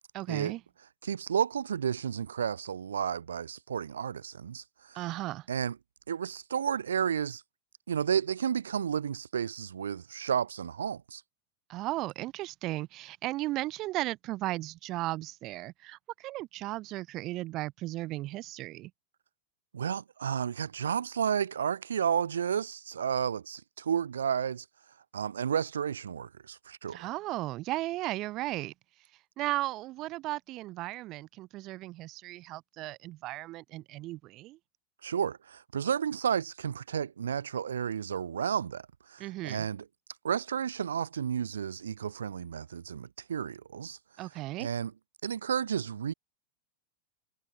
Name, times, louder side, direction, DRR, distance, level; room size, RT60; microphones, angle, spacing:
voice 1, 0.1-0.6 4.9-5.5 11.7-18.9 26.9-28.7 29.4-34.6 39.2-39.7 44.2-44.7, right 17 dB, 35° right, 3.0 m, -35 dB
voice 2, 1.0-5.0 5.5-5.8 6.1-7.4 7.9-11.2 19.7-24.7 25.1-27.1 35.0-39.9 40.2-44.0 44.6-44.9 45.2-46.1, right 8 dB, 65° right, 2.1 m, -32 dB
figure-of-eight pair, 90°, 0 cm